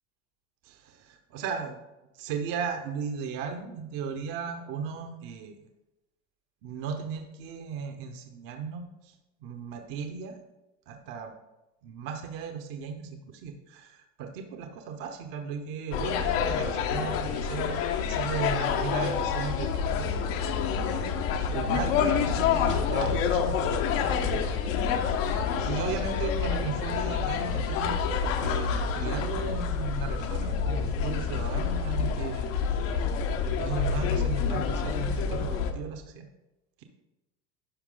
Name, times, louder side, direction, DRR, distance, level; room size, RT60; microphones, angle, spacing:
voice 1, 0.6-1.8 2.1-5.6 6.6-9.1 9.4-10.4 10.9-11.3 11.8-20.2 20.7-23.8 24.2-24.6 25.6-28.1 28.4-32.5 32.8-33.2 33.4-36.3 36.8-36.9, right 6 dB, 50° right, 5 dB, 1.2 m, -36 dB
sound 1, 15.9-35.7, left 6 dB, 65° left, 1.1 m, -28 dB
11.5 x 4.8 x 3.9 m, 1.0 s
hypercardioid pair, 100°, 42 cm